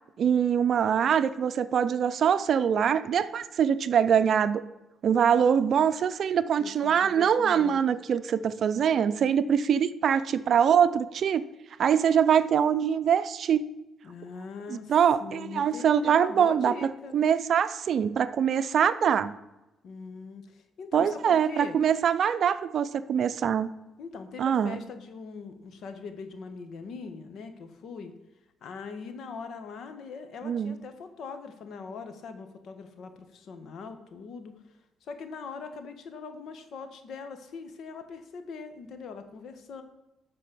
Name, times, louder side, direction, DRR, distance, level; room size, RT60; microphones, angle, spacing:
voice 1, 0.2-4.6 5.0-11.5 11.8-13.7 14.7-16.7 17.1-19.3 20.9-23.7 24.4-24.8 30.4-30.8, right 8 dB, 60° right, 14 dB, 0.5 m, -24 dB
voice 2, 6.6-7.8 14.0-14.9 15.2-17.2 19.8-21.7 24.0-28.1 28.6-34.6 35.0-39.8, left 5 dB, 70° left, 8 dB, 1.2 m, -41 dB
11.5 x 4.2 x 6.8 m, 0.97 s
cardioid pair, 90°, 0 cm